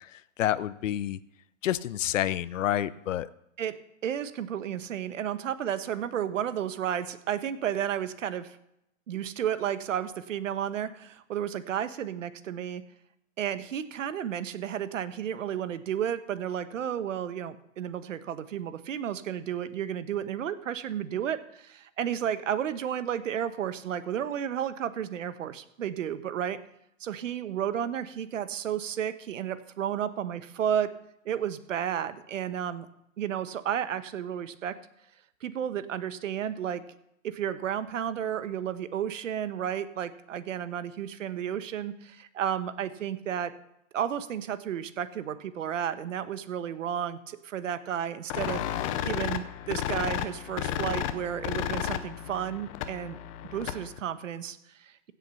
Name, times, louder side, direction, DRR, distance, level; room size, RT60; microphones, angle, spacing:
voice 1, 0.4-1.2 1.6-3.3, left 12 dB, 65° left, 17 dB, 0.7 m, -28 dB
voice 2, 4.0-8.6 9.1-12.8 13.4-26.6 27.0-30.9 31.2-32.9 33.2-34.8 35.4-36.8 37.2-43.5 43.9-53.2 53.5-55.1, right 9 dB, 65° right, 12 dB, 1.2 m, -32 dB
sound 1, 48.3-54.0, left 11 dB, 25° left, 0.7 m, -33 dB
16.0 x 7.6 x 5.8 m, 0.81 s
hypercardioid pair, 145°, 41 cm